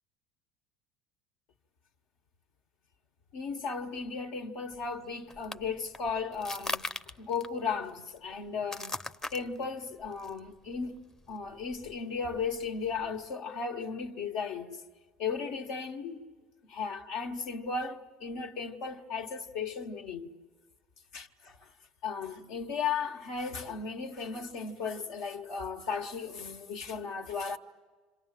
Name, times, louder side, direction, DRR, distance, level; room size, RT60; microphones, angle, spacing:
voice 1, 3.3-6.8 7.2-9.0 9.3-14.8 15.2-16.3 16.7-20.3 21.1-21.7 22.0-27.6, left 5 dB, 70° left, 1.7 m, -36 dB
sound 1, 4.7-13.3, left 2 dB, 15° left, 0.8 m, -42 dB
28.0 x 26.5 x 7.7 m
supercardioid pair, 90°, 4 cm